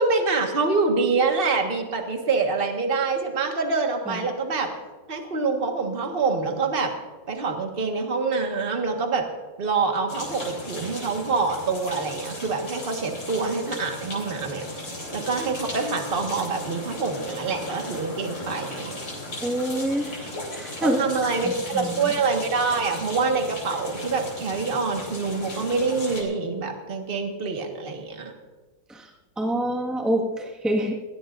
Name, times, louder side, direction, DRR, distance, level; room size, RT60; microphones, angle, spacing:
voice 1, 0.0-4.7 5.1-6.9 7.3-9.2 9.6-14.6 15.1-19.0 20.8-28.3, right 4 dB, 30° right, 3 dB, 1.7 m, -26 dB
sound 1, 10.1-26.2, left 1 dB, 75° left, 4.6 m, -37 dB
voice 2, 19.4-20.2 20.5-21.0 21.4-22.1 28.9-29.1 29.4-31.0, right 1 dB, ahead, -1 dB, 1.5 m, -26 dB
21.0 x 17.5 x 2.6 m, 1.3 s
omnidirectional pair, 2.0 m